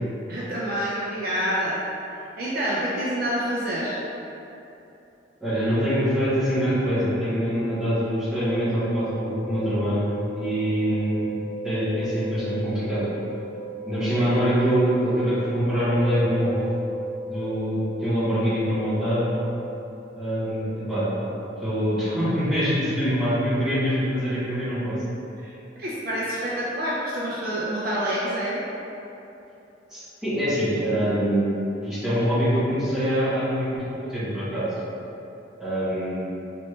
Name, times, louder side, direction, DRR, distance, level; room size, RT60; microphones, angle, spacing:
voice 1, 0.3-1.8 2.1-4.0 25.4-28.6, equal, 50° right, -7 dB, 0.5 m, -27 dB
voice 2, 5.4-11.3 11.6-13.0 13.8-16.6 17.2-19.3 20.1-21.1 21.6-25.0 29.9-31.5 31.8-34.7 35.6-36.3, equal, 5° right, -14 dB, 1.5 m, -24 dB
sound 1, 8.4-23.3 23.6-23.7, right 1 dB, 35° left, 1.3 m, -36 dB
4.3 x 3.1 x 3.2 m, 2.9 s
head